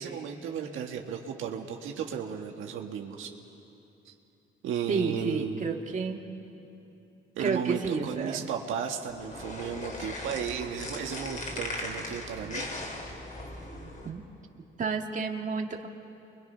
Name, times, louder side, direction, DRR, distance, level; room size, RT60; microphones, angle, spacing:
voice 1, 0.0-3.3 4.0-4.1 4.6-5.7 7.3-12.7, right 7 dB, 85° right, 2 dB, 1.8 m, -34 dB
voice 2, 4.9-6.2 7.4-8.5 13.8-14.3 14.5-15.9, right 5 dB, 40° right, 2 dB, 1.9 m, -31 dB
sound 1, 9.1-14.1, left 1 dB, 40° left, 4.1 m, -38 dB
29.0 x 23.5 x 5.8 m, 2.8 s
cardioid pair, 90°, 20 cm